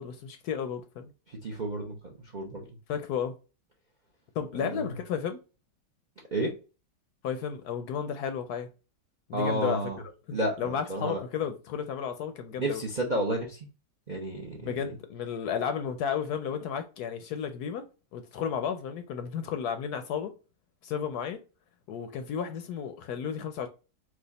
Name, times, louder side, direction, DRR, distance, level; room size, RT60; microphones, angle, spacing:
voice 1, 0.0-1.1 2.9-3.3 4.4-5.4 7.2-8.7 9.3-9.9 10.3-12.8 14.6-17.9 18.1-20.3 20.8-21.4 21.9-23.7, left 7 dB, 70° left, 1.0 m, -33 dB
voice 2, 1.3-2.0 2.3-2.6 4.5-4.9 6.3-6.5 9.3-10.0 10.3-11.2 12.6-13.6 14.1-14.9, right 1 dB, 50° right, 0.5 m, -31 dB
4.8 x 2.4 x 3.9 m
omnidirectional pair, 2.0 m